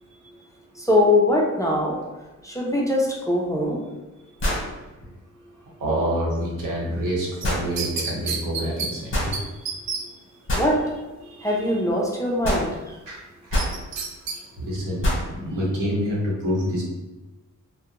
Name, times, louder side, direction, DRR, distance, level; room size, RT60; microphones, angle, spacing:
voice 1, 0.7-2.0 2.4-3.8 10.5-10.8 11.4-12.9, left 1 dB, 10° left, -3 dB, 0.4 m, -22 dB
sound 1, 3.2-3.3 4.4-4.7 7.4-7.7 9.1-9.3 10.5-10.7 12.4-12.7 13.5-13.8 15.0-15.3, equal, 40° left, 1.0 m, -24 dB
voice 2, 5.8-9.4 11.3-11.5 13.1-13.2 13.5-13.6 14.7-16.8, equal, 80° right, -4 dB, 1.0 m, -27 dB
sound 2, 7.4-8.9 9.3-9.4 9.7-10.0 13.6-14.4 14.8-14.9, right 5 dB, 60° right, 0.5 m, -29 dB
2.4 x 2.1 x 2.8 m, 1.1 s
wide cardioid pair, 120°, 31 cm